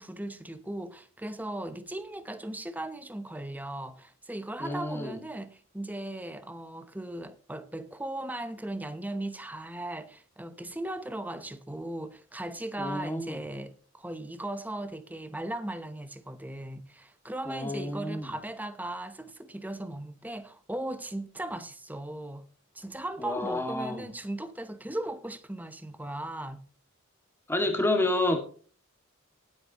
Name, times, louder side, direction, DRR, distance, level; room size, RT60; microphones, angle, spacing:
voice 1, 0.0-22.5 22.7-26.6, right 1 dB, 10° right, 0.9 m, -37 dB
voice 2, 4.6-5.2 12.8-13.4 17.5-18.3 23.2-24.1 27.5-28.4, left 1 dB, 10° left, 2.1 m, -29 dB
18.0 x 8.5 x 3.0 m
head